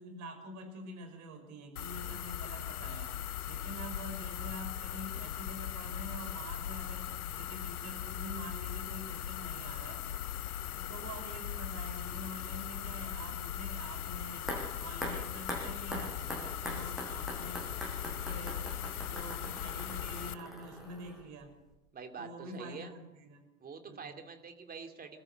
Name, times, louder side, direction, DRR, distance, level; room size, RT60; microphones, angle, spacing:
voice 1, 0.0-3.1 3.4-10.1 10.7-14.5 14.8-17.7 18.0-21.5 22.2-23.5 23.9-24.2, right 1 dB, 35° right, 7 dB, 5.5 m, -46 dB
sound 1, 1.8-20.3, left 10 dB, 70° left, 0.9 m, -39 dB
sound 2, 14.5-21.4 21.7-21.8, equal, ahead, 6.9 m, -43 dB
voice 2, 21.9-23.0 23.6-25.2, right 5 dB, 20° right, 5 dB, 2.9 m, -46 dB
27.0 x 14.0 x 7.8 m, 1.0 s
figure-of-eight pair, 90°, 46 cm